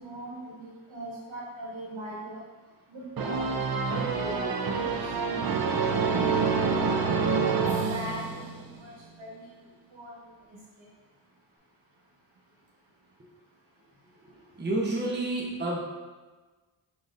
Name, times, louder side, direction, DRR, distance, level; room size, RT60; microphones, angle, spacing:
voice 1, 0.0-2.4 2.9-3.4 3.7-7.0 7.5-8.5 8.8-9.5 9.9-10.2, right 1 dB, 85° right, -6 dB, 1.5 m, -40 dB
sound 1, 3.2-8.8, right 5 dB, 50° right, 0.5 m, -27 dB
voice 2, 14.2-15.8, right 2 dB, 25° right, -3 dB, 0.9 m, -30 dB
5.0 x 3.8 x 2.6 m, 1.3 s
wide cardioid pair, 60°, 46 cm